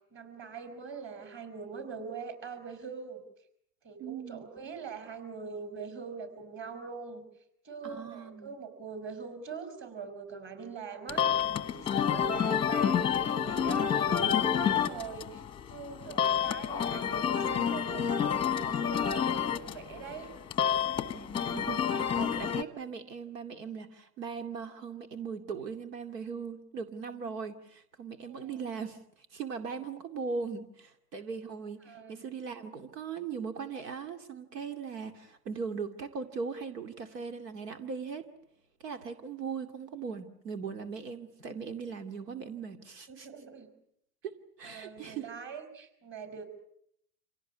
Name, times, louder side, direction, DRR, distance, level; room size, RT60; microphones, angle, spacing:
voice 1, 0.1-3.2 3.8-7.2 7.6-15.4 15.7-19.3 19.6-20.3 28.2-28.7 31.9-32.2 40.1-40.2 43.1-43.7 44.6-46.6, right 5 dB, 25° right, 8 dB, 5.4 m, -43 dB
voice 2, 4.0-4.5 7.8-8.5 21.1-38.3 38.8-43.3 44.2-45.3, right 5 dB, 75° right, 8 dB, 2.5 m, -39 dB
sound 1, 11.1-22.6, left 8 dB, 10° left, 1.0 m, -29 dB
26.5 x 17.5 x 9.6 m, 0.74 s
hypercardioid pair, 140°, 48 cm